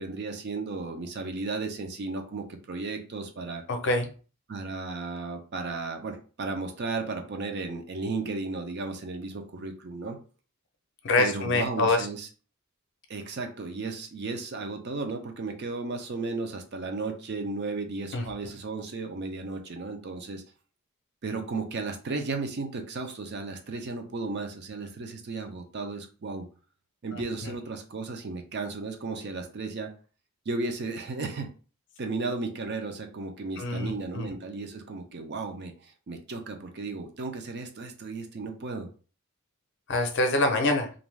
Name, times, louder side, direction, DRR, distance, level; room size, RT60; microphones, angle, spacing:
voice 1, 0.0-3.6 4.5-10.2 11.2-12.3 13.1-20.4 21.2-26.5 27.0-29.9 30.5-31.5 32.0-38.9, right 3 dB, 50° right, 5 dB, 0.5 m, -34 dB
voice 2, 3.7-4.1 11.0-12.1 18.1-18.3 27.1-27.5 33.6-34.3 39.9-40.9, left 2 dB, 55° left, 5 dB, 0.5 m, -26 dB
2.5 x 2.2 x 3.1 m, 0.37 s
head